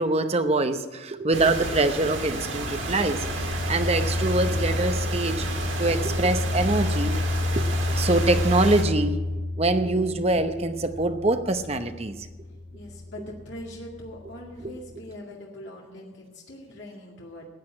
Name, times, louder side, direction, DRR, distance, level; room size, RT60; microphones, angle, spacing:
voice 1, 0.0-7.2 7.6-7.7 8.0-9.2 9.6-12.2 14.6-14.7, right 2 dB, 30° right, 9 dB, 0.8 m, -24 dB
sound 1, 1.3-8.8, right 2 dB, 85° right, 2.6 m, -32 dB
sound 2, 2.6-15.1, left 2 dB, 50° left, 0.6 m, -30 dB
voice 2, 12.7-17.5, left 1 dB, 70° left, -1 dB, 2.1 m, -42 dB
14.0 x 8.1 x 8.7 m, 1.3 s
head